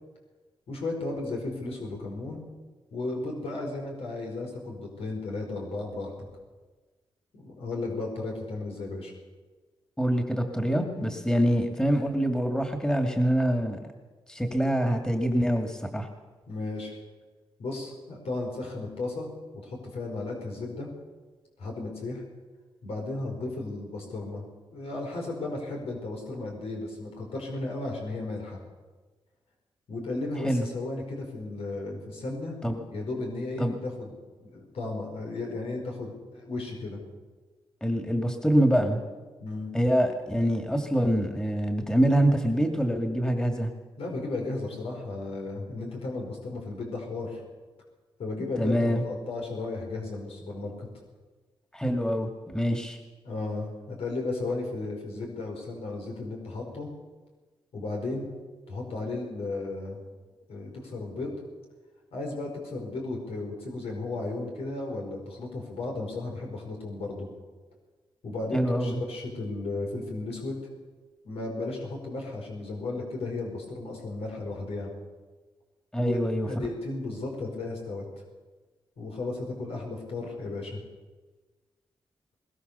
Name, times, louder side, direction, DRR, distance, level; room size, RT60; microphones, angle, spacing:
voice 1, 0.7-2.4 2.9-6.3 7.3-9.1 16.5-17.0 17.6-19.3 19.6-20.9 21.6-22.2 22.8-24.4 24.7-28.6 29.9-32.6 32.9-34.1 34.4-37.0 39.4-39.7 44.0-47.4 48.2-50.9 53.2-56.9 57.7-58.3 58.7-60.0 60.5-61.3 62.1-67.3 68.2-70.5 71.2-74.9 75.9-76.2 76.4-78.1 79.0-80.8, left 2 dB, 85° left, 0 dB, 5.2 m, -34 dB
voice 2, 10.0-13.8 14.3-16.1 30.4-30.7 32.6-32.8 33.6-33.7 37.8-39.0 39.7-43.7 48.6-49.0 51.7-53.0 68.5-69.0 75.9-76.5, equal, 5° left, 4 dB, 2.3 m, -25 dB
21.0 x 21.0 x 6.9 m, 1.3 s
wide cardioid pair, 105°, 10 cm